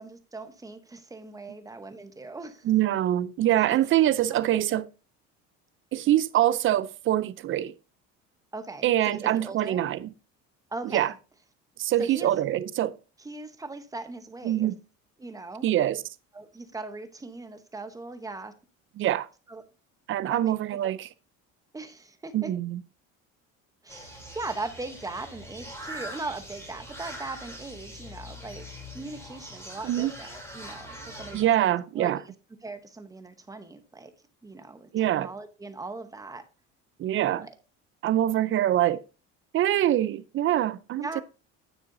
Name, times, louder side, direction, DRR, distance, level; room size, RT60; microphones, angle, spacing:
voice 1, 0.0-2.7 8.5-9.8 10.7-11.1 12.0-12.3 13.2-14.7 15.2-15.7 16.3-18.5 19.5-19.6 20.3-20.5 20.8-20.9 21.7-22.5 23.8-32.2 32.6-34.1 34.4-36.4 37.4-37.5 41.0-41.2, right 3 dB, 10° right, 0.8 m, -39 dB
voice 2, 2.6-4.9 5.9-7.7 8.8-10.1 10.9-11.1 11.8-12.9 14.4-14.7 15.6-16.0 19.0-19.3 20.1-21.1 22.3-22.8 29.8-30.1 31.3-32.2 34.9-35.3 37.0-37.5 38.0-39.0 39.5-41.1, right 12 dB, 45° right, 0.5 m, -24 dB
sound 1, 23.9-31.4, equal, 10° left, 3.1 m, -42 dB
9.6 x 6.8 x 2.6 m
cardioid pair, 135°, 30 cm